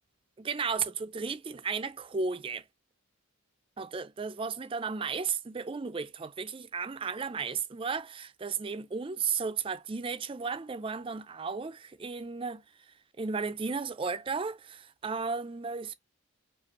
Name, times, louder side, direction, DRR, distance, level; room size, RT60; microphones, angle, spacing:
voice 1, 0.4-2.6 3.8-12.6 13.2-15.9, right 5 dB, 25° right, 0.4 m, -34 dB
5.1 x 2.4 x 2.9 m
head